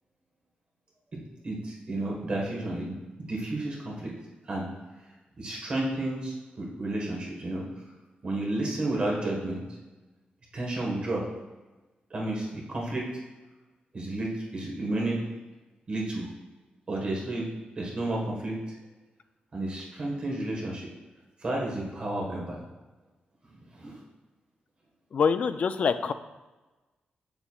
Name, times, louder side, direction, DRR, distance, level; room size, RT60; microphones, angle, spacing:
voice 1, 1.4-3.0 3.3-4.1 4.4-4.7 5.4-7.6 8.2-9.6 10.5-11.2 12.1-13.0 13.9-15.2 15.9-16.3 16.9-17.5 17.8-18.6 19.5-20.9 21.4-22.6 23.7-24.0, right 2 dB, 35° right, -2 dB, 1.4 m, -31 dB
voice 2, 25.1-26.1, left 6 dB, 50° left, 10 dB, 0.3 m, -25 dB
7.8 x 7.0 x 2.4 m, 1.2 s
wide cardioid pair, 170°, 3 cm